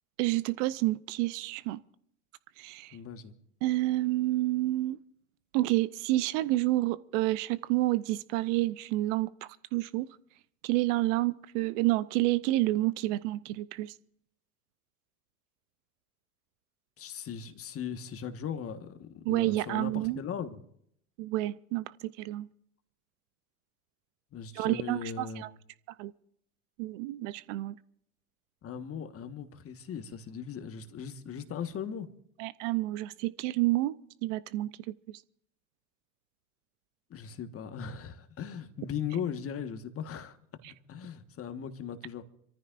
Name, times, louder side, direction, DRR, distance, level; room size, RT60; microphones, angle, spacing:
voice 1, 0.2-1.8 2.6-3.0 3.6-5.0 5.5-10.1 10.6-13.9 19.2-20.2 21.2-22.5 24.5-25.5 26.0-26.1 26.8-27.8 32.4-35.2 40.6-40.7, right 18 dB, 55° right, 0.7 m, -29 dB
voice 2, 2.9-3.3 17.0-20.6 24.3-25.4 28.6-32.1 37.1-40.4 40.6-42.2, left 7 dB, 30° left, 1.5 m, -38 dB
28.0 x 14.5 x 2.6 m
hypercardioid pair, 95°, 44 cm